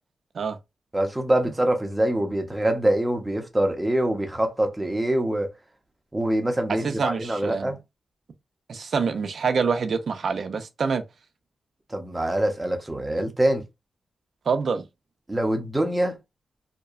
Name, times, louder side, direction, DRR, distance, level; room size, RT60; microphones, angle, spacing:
voice 1, 0.9-5.5 6.1-7.8 11.9-13.6 15.3-16.2, right 1 dB, 15° right, 0.7 m, -24 dB
voice 2, 6.8-7.7 8.7-11.0 14.5-14.8, right 5 dB, 70° right, 0.4 m, -26 dB
2.7 x 2.2 x 2.4 m
cardioid pair, 70°, 0 cm